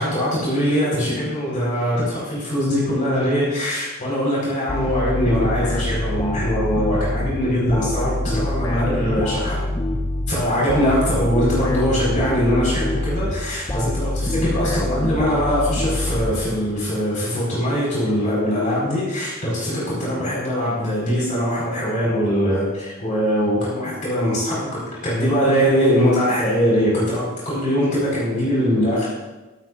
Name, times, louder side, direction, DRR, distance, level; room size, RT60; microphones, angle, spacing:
voice 1, 0.0-9.7 10.3-29.1, equal, 35° left, -6 dB, 4.7 m, -22 dB
sound 1, 4.7-16.9, left 1 dB, 20° left, 0.7 m, -25 dB
16.5 x 15.0 x 2.6 m, 1.1 s
head